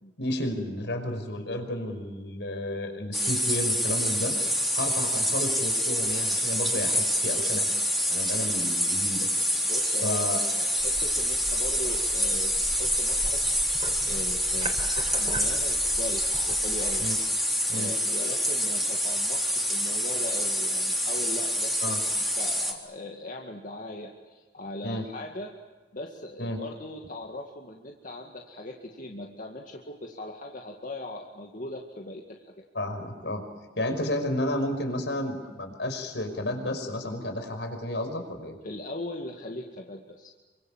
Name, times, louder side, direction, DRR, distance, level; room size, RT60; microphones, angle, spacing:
voice 1, 0.2-4.3 4.7-7.7 8.1-9.3 10.0-10.4 17.0-17.1 17.7-17.9 21.8-22.0 24.8-25.0 26.4-26.6 32.7-33.4 33.8-38.6, left 1 dB, 80° left, 6 dB, 5.6 m, -32 dB
sound 1, 3.1-22.7, equal, ahead, 3.9 m, -27 dB
voice 2, 9.6-17.0 17.7-25.5 25.9-32.5 38.6-40.3, left 1 dB, 50° left, 1 dB, 2.2 m, -40 dB
sound 2, 10.8-17.0, right 1 dB, 40° right, 4.3 m, -39 dB
29.0 x 25.0 x 7.4 m, 1.3 s
head